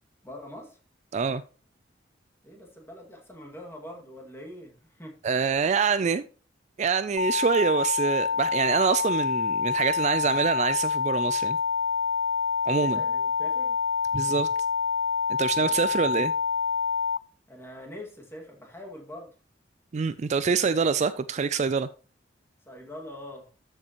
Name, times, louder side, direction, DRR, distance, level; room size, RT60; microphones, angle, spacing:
voice 1, 0.2-0.8 2.4-5.2 12.8-13.8 15.6-16.3 17.5-19.3 22.7-23.5, left 1 dB, 15° left, 2.1 m, -44 dB
voice 2, 5.2-6.2 6.8-11.6 12.7-13.0 14.1-14.5 15.3-16.3 19.9-21.9, right 5 dB, 35° right, 0.3 m, -25 dB
sound 1, 7.2-17.2, left 5 dB, 90° left, 0.5 m, -27 dB
13.0 x 6.7 x 3.0 m
head